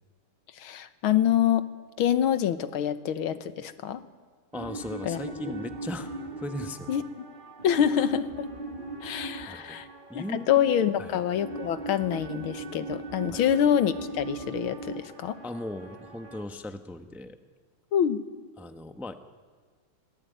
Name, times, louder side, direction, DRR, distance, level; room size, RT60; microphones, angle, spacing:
voice 1, 0.6-1.7 2.0-4.0 5.0-5.5 6.9-7.0 7.6-8.5 9.0-9.9 10.1-15.4 17.9-18.2, left 9 dB, 85° left, 12 dB, 1.9 m, -26 dB
voice 2, 4.5-6.1 6.4-6.9 9.4-9.8 10.1-10.7 11.0-11.2 13.3-13.4 15.4-17.4 18.6-19.1, left 1 dB, ahead, 7 dB, 0.8 m, -38 dB
sound 1, 4.5-16.4, right 2 dB, 25° right, 1.8 m, -40 dB
25.0 x 18.5 x 9.4 m, 1.5 s
omnidirectional pair, 2.2 m